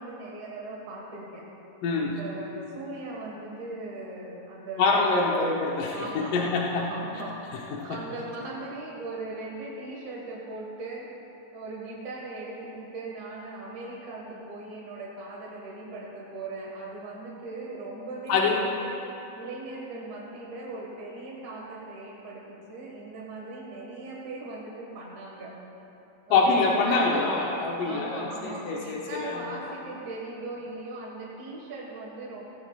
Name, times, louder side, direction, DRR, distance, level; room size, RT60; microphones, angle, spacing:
voice 1, 0.0-1.4 1.9-5.2 5.9-11.1 11.5-19.0 19.4-25.5 26.3-27.5 27.8-32.5, right 2 dB, 70° right, -4 dB, 3.0 m, -39 dB
voice 2, 1.8-2.2 4.8-6.9 7.7-8.0 18.3-18.7 26.3-29.3, left 3 dB, 90° left, -2 dB, 2.6 m, -25 dB
18.5 x 16.0 x 2.4 m, 2.9 s
omnidirectional pair, 3.6 m